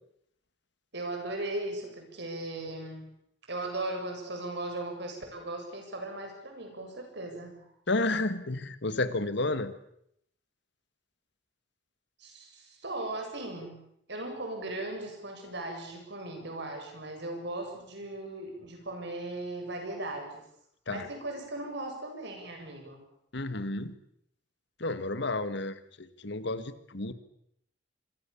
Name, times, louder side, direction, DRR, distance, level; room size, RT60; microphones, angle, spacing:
voice 1, 0.9-3.1 3.5-7.6 12.2-13.8 14.1-20.4 20.9-23.0, right 2 dB, 65° right, 4 dB, 7.9 m, -38 dB
voice 2, 7.9-9.7 20.9-21.1 23.3-23.9 24.8-27.1, left 2 dB, 65° left, 12 dB, 1.8 m, -31 dB
26.5 x 23.0 x 7.2 m, 0.71 s
head